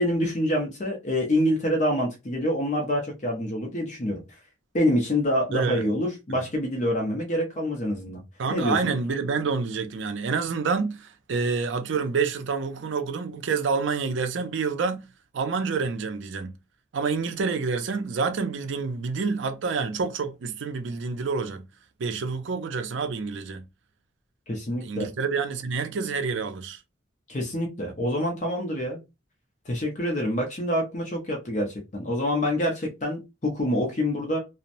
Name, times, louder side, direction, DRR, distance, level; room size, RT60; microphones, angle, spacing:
voice 1, 0.0-4.2 4.7-8.2 8.5-8.9 24.5-25.1 27.3-29.0 29.7-34.4, left 1 dB, 40° left, 0.6 m, -26 dB
voice 2, 5.5-5.9 6.3-6.4 8.4-15.1 15.3-16.5 16.9-21.6 22.0-23.6 24.8-26.8, right 5 dB, 75° right, 0.4 m, -28 dB
2.9 x 2.0 x 2.5 m
head